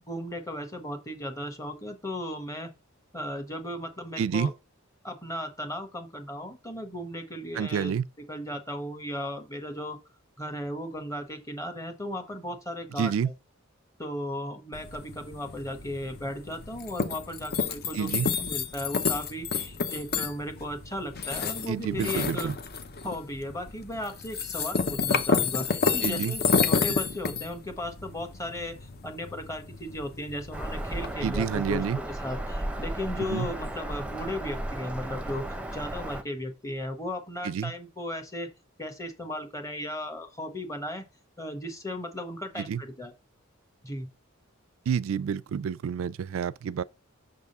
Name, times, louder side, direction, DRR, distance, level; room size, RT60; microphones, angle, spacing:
voice 1, 0.1-2.7 3.1-4.5 5.0-7.9 8.3-10.0 10.4-13.1 14.0-22.5 23.0-35.5 35.7-38.5 38.8-41.1 41.4-43.1 43.8-44.1, left 1 dB, 15° left, 1.1 m, -36 dB
voice 2, 4.2-4.5 7.5-8.1 13.0-13.3 17.9-18.3 21.7-22.5 26.0-26.4 31.2-32.0 33.2-33.5 37.4-37.7 42.6-42.8 44.9-46.8, right 7 dB, 70° right, 0.3 m, -29 dB
sound 1, 14.7-31.1, left 5 dB, 50° left, 0.7 m, -30 dB
Bird vocalization bird call bird song, 30.5-36.2, right 1 dB, 5° right, 0.6 m, -34 dB
6.5 x 3.6 x 5.4 m
head